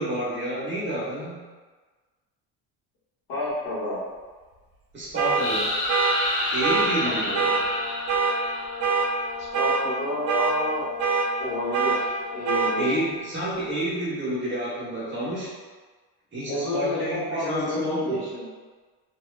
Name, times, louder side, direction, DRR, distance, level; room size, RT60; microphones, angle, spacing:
voice 1, 0.0-1.4 4.9-5.8 6.5-7.6 12.8-15.5 16.3-18.2, right 1 dB, 30° right, -7 dB, 0.9 m, -29 dB
voice 2, 3.3-4.0 7.0-7.6 9.4-10.9 11.4-12.9 16.5-18.5, left 1 dB, 80° left, -9 dB, 1.3 m, -30 dB
sound 1, 5.2-5.4 5.9-6.2 6.6-6.9 7.3-7.6 8.1-8.3 8.8-9.1 9.5-9.8 10.3-10.5 11.0-11.3 11.7-12.0 12.4-12.7, right 5 dB, 80° right, 0.6 m, -23 dB
sound 2, 5.4-9.2, left 1 dB, 50° left, 0.7 m, -29 dB
sound 3, 6.6-13.2, left 4 dB, 10° left, 0.4 m, -39 dB
2.8 x 2.3 x 2.2 m, 1.4 s
cardioid pair, 130°, 38 cm